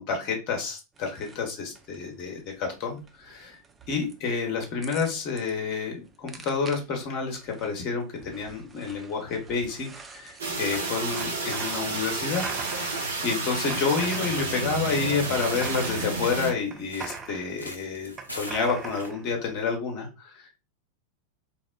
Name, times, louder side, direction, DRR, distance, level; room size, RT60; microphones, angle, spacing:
voice 1, 0.0-3.6 3.9-12.4 12.8-12.9 13.2-20.5, left 5 dB, 40° left, 2 dB, 0.7 m, -29 dB
sound 1, 1.0-19.7, right 4 dB, 15° right, 0.3 m, -43 dB
sound 2, 10.4-16.5, right 3 dB, 65° right, 0.6 m, -30 dB
sound 3, 14.2-19.1, equal, 85° left, 0.4 m, -45 dB
2.9 x 2.1 x 2.2 m, 0.30 s
figure-of-eight pair, 90°, 0 cm